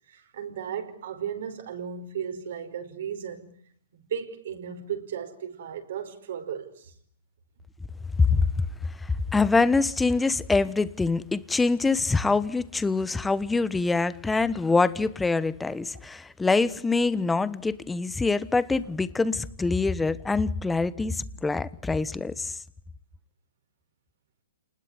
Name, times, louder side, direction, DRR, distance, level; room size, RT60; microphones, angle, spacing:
voice 1, 0.1-3.5 4.1-6.9, right 8 dB, 65° right, 4.9 m, -35 dB
voice 2, 8.2-22.6, left 3 dB, 5° left, 1.1 m, -25 dB
28.5 x 20.0 x 9.8 m
hypercardioid pair, 140°, 0 cm